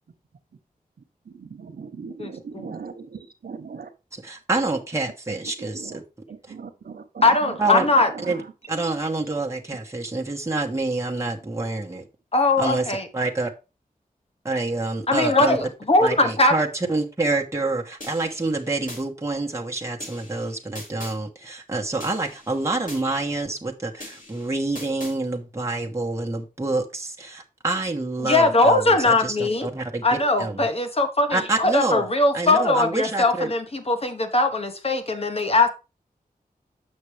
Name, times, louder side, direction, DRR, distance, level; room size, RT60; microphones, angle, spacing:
voice 1, 1.2-3.9 5.4-6.0 6.3-8.5 9.7-9.8, right 5 dB, 90° right, 8 dB, 1.0 m, -39 dB
voice 2, 4.1-6.0 7.6-7.8 8.3-8.4 8.7-12.1 12.6-12.9 13.1-13.5 14.4-15.6 16.0-30.7 31.3-32.1 32.3-33.5, right 2 dB, 20° right, 0 dB, 1.1 m, -27 dB
voice 3, 7.2-8.1 12.3-13.1 15.1-16.5 28.2-29.7 30.0-35.7, left 2 dB, 40° left, 6 dB, 1.2 m, -20 dB
sound 1, 18.0-19.0 20.0-21.2 22.0-23.0 24.0-25.2, left 1 dB, 65° left, 4.7 m, -41 dB
7.4 x 6.1 x 3.3 m, 0.30 s
wide cardioid pair, 85°, 15 cm